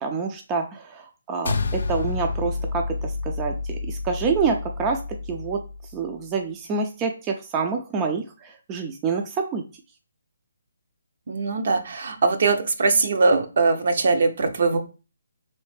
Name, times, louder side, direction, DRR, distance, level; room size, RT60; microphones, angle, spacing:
voice 1, 0.0-5.0 5.3-5.6 5.9-9.6, right 5 dB, 20° right, 3 dB, 0.4 m, -27 dB
sound 1, 1.4-6.0, left 3 dB, 70° left, 0.4 m, -29 dB
voice 2, 11.3-14.8, right 3 dB, 60° right, 6 dB, 0.6 m, -21 dB
3.1 x 3.1 x 3.2 m, 0.32 s
hypercardioid pair, 150°, 0 cm